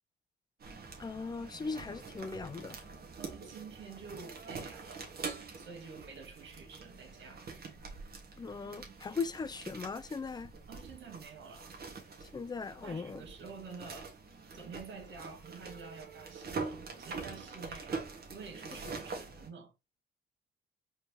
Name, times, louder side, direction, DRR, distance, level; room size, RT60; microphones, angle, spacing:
sound 1, 0.6-19.5, right 4 dB, 55° right, 1.6 m, -45 dB
voice 1, 1.0-2.8 8.4-10.5 12.3-13.2, left 4 dB, 20° left, 0.4 m, -39 dB
voice 2, 3.2-5.1 5.6-7.5 10.7-11.7 12.8-14.1 14.5-18.0 18.3-19.7, right 5 dB, 70° right, 1.7 m, -49 dB
4.3 x 3.4 x 2.8 m
cardioid pair, 90°, 20 cm